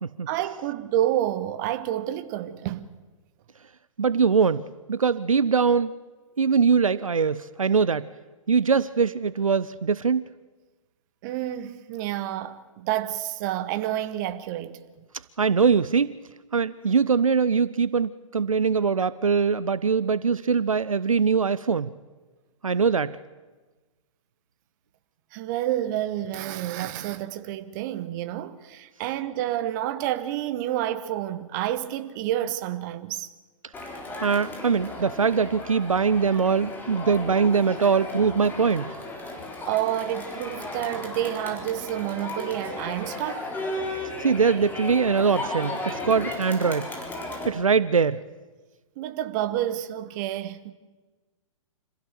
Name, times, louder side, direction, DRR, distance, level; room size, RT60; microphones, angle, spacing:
voice 1, 0.3-2.9 11.2-15.1 25.3-33.3 39.7-43.5 49.0-50.7, right 12 dB, 35° right, 1.3 m, -29 dB
voice 2, 4.0-5.9 6.4-8.1 8.5-10.3 15.4-16.2 16.5-21.9 22.6-23.2 34.2-38.9 44.2-46.9 47.4-48.2, right 5 dB, 80° right, 0.6 m, -22 dB
Crowd, 33.7-47.5, left 2 dB, 10° left, 3.7 m, -35 dB
26.0 x 16.0 x 7.0 m
figure-of-eight pair, 115°, 17 cm